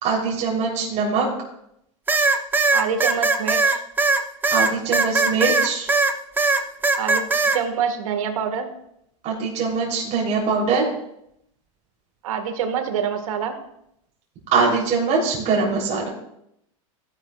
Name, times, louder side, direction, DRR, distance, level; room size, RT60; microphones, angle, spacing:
voice 1, 0.0-1.3 4.5-5.9 9.2-10.9 14.5-16.1, right 4 dB, 40° right, -3 dB, 3.5 m, -22 dB
sound 1, 2.1-6.1 6.4-7.6, right 3 dB, 10° right, 0.9 m, -19 dB
voice 2, 2.7-3.8 7.0-7.2 7.5-8.7 12.2-13.6, right 7 dB, 75° right, 7 dB, 1.8 m, -26 dB
16.0 x 11.0 x 2.4 m, 0.76 s
hypercardioid pair, 120°, 18 cm